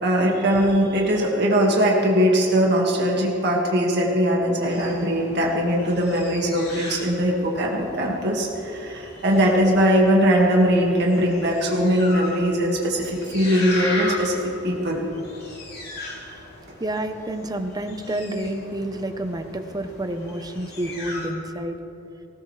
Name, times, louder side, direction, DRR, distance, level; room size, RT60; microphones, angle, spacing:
voice 1, 0.0-15.1, equal, 60° right, -1 dB, 1.9 m, -21 dB
sound 1, 4.7-21.3, left 2 dB, 55° left, 3.2 m, -37 dB
voice 2, 16.8-21.8, right 1 dB, 20° right, 7 dB, 0.8 m, -29 dB
20.0 x 17.0 x 3.3 m, 2.8 s
head